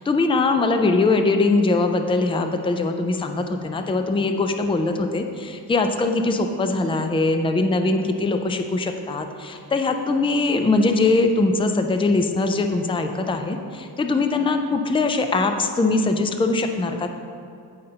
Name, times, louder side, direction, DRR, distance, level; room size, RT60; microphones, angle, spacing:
voice 1, 0.0-17.1, left 3 dB, 15° left, 6 dB, 0.4 m, -22 dB
15.0 x 5.4 x 2.8 m, 2.4 s
wide cardioid pair, 150°, 40 cm